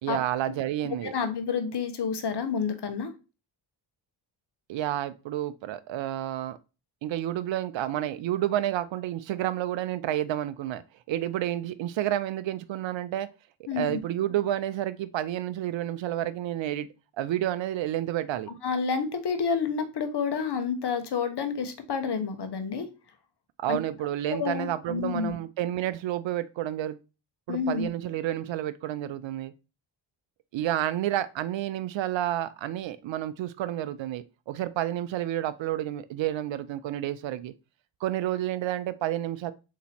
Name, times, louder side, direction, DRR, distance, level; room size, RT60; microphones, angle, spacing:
voice 1, 0.0-1.1 4.7-6.6 7.0-13.3 13.6-16.9 17.2-18.5 23.6-27.0 27.5-29.5 30.5-37.5 38.0-39.5, right 12 dB, 65° right, 0.5 m, -30 dB
voice 2, 1.0-3.1 13.7-14.0 18.6-22.9 23.7-23.8 24.3-25.3 27.5-27.9, left 6 dB, 55° left, 1.0 m, -29 dB
4.0 x 3.0 x 4.2 m
supercardioid pair, 40°, 49 cm